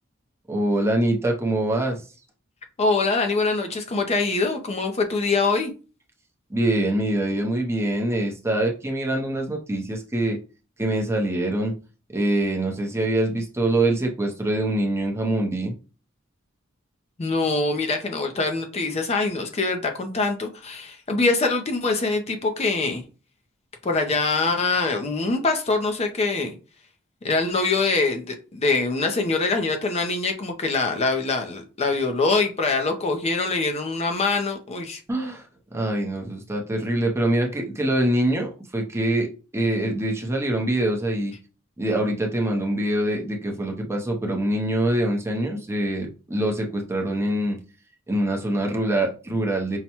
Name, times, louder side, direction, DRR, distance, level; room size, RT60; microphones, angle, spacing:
voice 1, 0.5-2.0 6.5-10.4 10.8-11.7 12.1-15.7 35.1-35.4 35.7-41.4 41.8-47.6 48.1-49.8, right 1 dB, 15° right, 0.6 m, -24 dB
voice 2, 2.8-5.7 17.2-23.0 23.8-26.6 27.2-35.0, left 3 dB, 30° left, 0.5 m, -24 dB
5.5 x 2.1 x 2.9 m
head